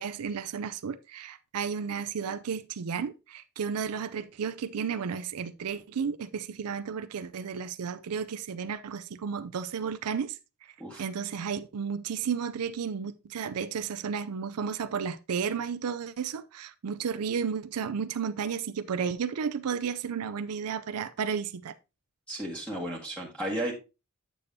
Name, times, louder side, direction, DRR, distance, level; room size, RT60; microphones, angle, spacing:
voice 1, 0.0-10.4 11.0-21.7, right 6 dB, 90° right, 0.5 m, -33 dB
voice 2, 22.3-23.7, right 1 dB, 5° left, 1.6 m, -34 dB
8.3 x 6.9 x 2.7 m
head